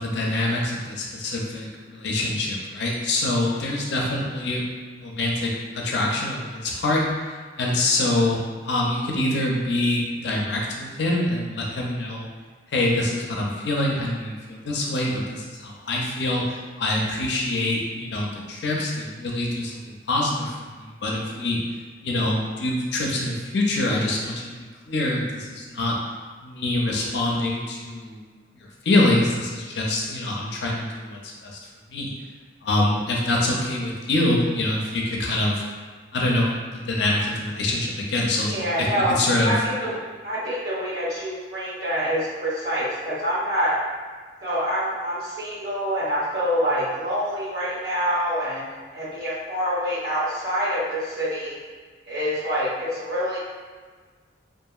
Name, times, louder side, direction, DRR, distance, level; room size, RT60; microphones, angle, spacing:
voice 1, 0.0-4.6 4.9-12.3 12.7-21.6 22.0-24.6 24.9-26.0 26.4-28.2 28.5-31.6 31.9-32.1 32.6-35.6 36.1-38.5 39.1-39.5, left 1 dB, 65° left, -2 dB, 0.4 m, -25 dB
voice 2, 38.4-39.1 39.4-43.7 44.4-48.6 48.9-51.6 52.0-53.4, equal, 55° right, -9 dB, 1.0 m, -26 dB
2.8 x 2.4 x 2.3 m, 1.5 s
head